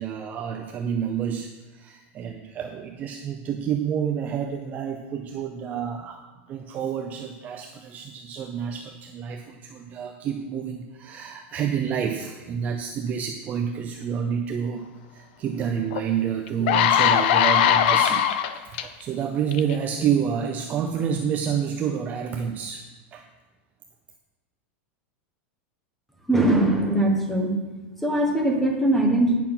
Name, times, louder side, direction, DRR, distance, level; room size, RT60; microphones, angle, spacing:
voice 1, 0.0-14.9 15.1-18.3 18.5-22.8 23.1-23.2, right 8 dB, 25° right, 4 dB, 0.5 m, -29 dB
sound 1, 15.9-16.0 16.5-18.8 19.5-19.7, left 10 dB, 55° left, 0.6 m, -20 dB
voice 2, 26.3-27.6 28.0-29.4, right 1 dB, ahead, 1 dB, 1.1 m, -21 dB
8.9 x 5.8 x 5.8 m, 1.2 s
supercardioid pair, 165°, 7 cm